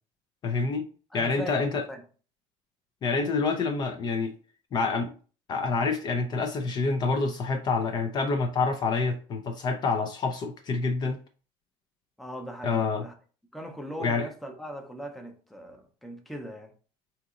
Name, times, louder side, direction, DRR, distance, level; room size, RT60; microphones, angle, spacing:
voice 1, 0.4-0.9 1.1-1.8 3.0-4.3 4.7-5.1 5.5-11.2 12.6-13.0 14.0-14.3, left 4 dB, 35° left, 0.4 m, -27 dB
voice 2, 1.1-2.0 12.2-13.1 13.5-16.7, equal, ahead, 0.7 m, -39 dB
3.9 x 2.8 x 3.7 m
cardioid pair, 130°, 12 cm